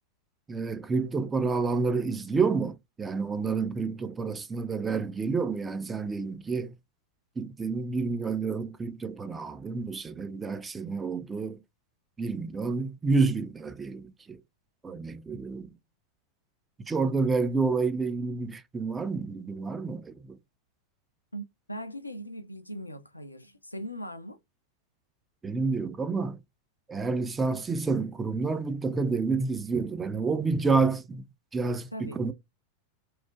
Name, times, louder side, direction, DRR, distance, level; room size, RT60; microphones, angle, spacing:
voice 1, 0.5-6.7 7.4-11.6 12.2-14.4 14.8-15.7 16.9-20.4 25.4-26.4 26.9-31.2 31.5-32.3, right 4 dB, 15° right, 0.4 m, -29 dB
voice 2, 21.3-24.4 31.9-32.2, equal, 85° left, 0.3 m, -40 dB
3.0 x 2.1 x 2.3 m
figure-of-eight pair, 90°, 0 cm